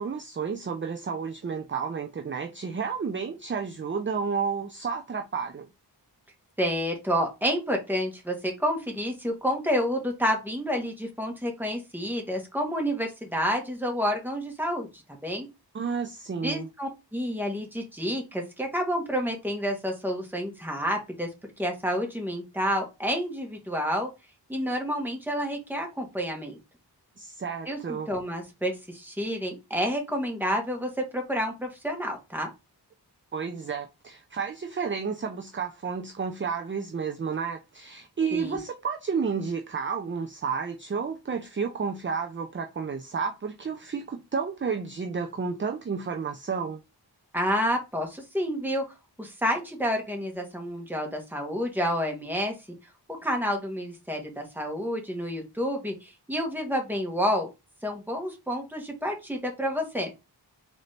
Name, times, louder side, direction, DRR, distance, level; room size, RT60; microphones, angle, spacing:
voice 1, 0.0-5.7 15.7-16.7 27.2-28.1 33.3-46.8, right 5 dB, 30° right, 0.4 m, -31 dB
voice 2, 6.6-14.9 15.2-15.5 16.4-21.3 21.6-24.1 24.5-26.6 27.7-32.5 38.3-38.6 47.3-48.8 49.2-52.5 53.2-57.5 57.8-60.1, equal, 5° right, 1.2 m, -29 dB
4.0 x 2.7 x 3.2 m
wide cardioid pair, 50°, 42 cm